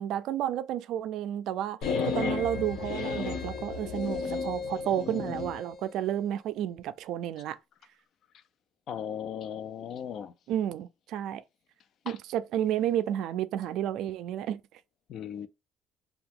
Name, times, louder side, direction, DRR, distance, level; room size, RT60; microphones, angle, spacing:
voice 1, 0.0-1.8 2.1-7.6 10.5-11.4 12.1-14.6, right 11 dB, 70° right, 0.3 m, -31 dB
sound 1, 1.8-5.6, left 5 dB, 80° left, 1.2 m, -32 dB
voice 2, 8.9-10.3 12.1-12.2 15.1-15.5, left 8 dB, 55° left, 0.4 m, -37 dB
2.7 x 2.3 x 3.7 m
cardioid pair, 110°, 0 cm